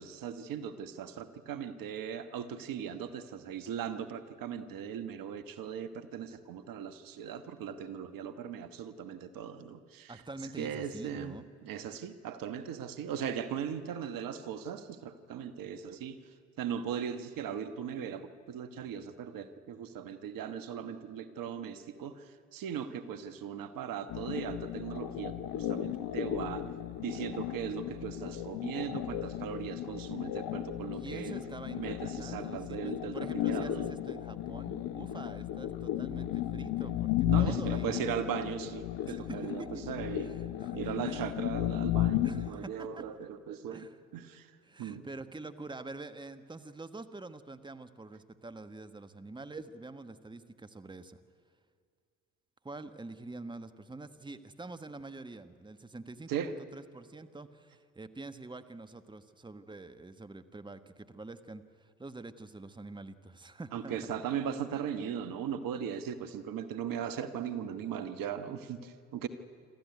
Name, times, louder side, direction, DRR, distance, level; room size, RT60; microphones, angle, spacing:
voice 1, 0.0-10.1 10.6-11.4 11.6-16.2 16.6-22.1 22.5-26.6 27.0-31.3 31.8-33.9 37.3-40.3 40.8-42.2 42.5-43.9 44.1-44.5 44.8-45.0 56.3-56.5 63.7-69.3, right 8 dB, 65° right, 11 dB, 1.3 m, -38 dB
voice 2, 10.1-11.5 30.9-38.1 39.1-41.3 42.2-43.2 43.7-44.0 44.6-51.2 52.6-64.1, right 2 dB, 10° right, 10 dB, 1.3 m, -46 dB
sound 1, 24.1-42.5, left 13 dB, 70° left, 1.0 m, -34 dB
26.5 x 14.0 x 9.5 m, 2.3 s
hypercardioid pair, 55°, 37 cm